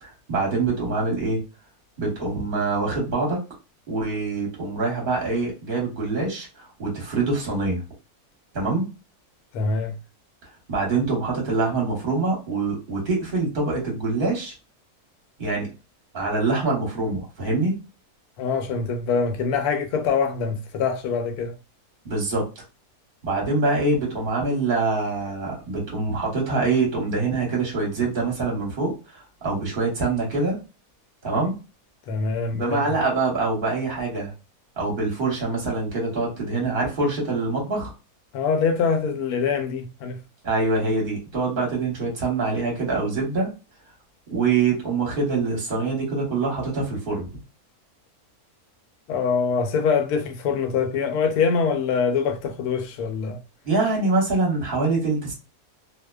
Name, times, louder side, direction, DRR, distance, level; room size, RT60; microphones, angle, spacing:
voice 1, 0.0-1.4 2.0-3.4 3.9-7.8 8.5-8.9 10.7-14.5 15.4-15.7 16.1-17.8 22.0-22.4 23.2-30.6 31.2-31.6 32.5-34.3 34.8-37.9 40.4-43.5 44.3-47.3 53.6-55.3, right 3 dB, 40° right, 1.1 m, -24 dB
voice 2, 9.5-10.0 18.4-21.5 32.1-33.0 38.3-40.2 49.1-53.4, left 5 dB, 75° left, 1.1 m, -24 dB
2.7 x 2.1 x 2.2 m
omnidirectional pair, 1.6 m